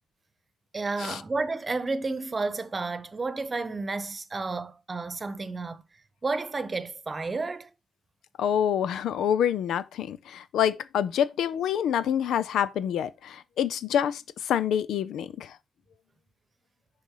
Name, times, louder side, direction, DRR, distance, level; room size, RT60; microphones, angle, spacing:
voice 1, 0.7-5.8 6.2-7.7, right 3 dB, 35° right, 1.0 m, -31 dB
voice 2, 8.4-15.6, left 9 dB, 75° left, 0.5 m, -27 dB
6.5 x 4.0 x 4.8 m
supercardioid pair, 50°, 0 cm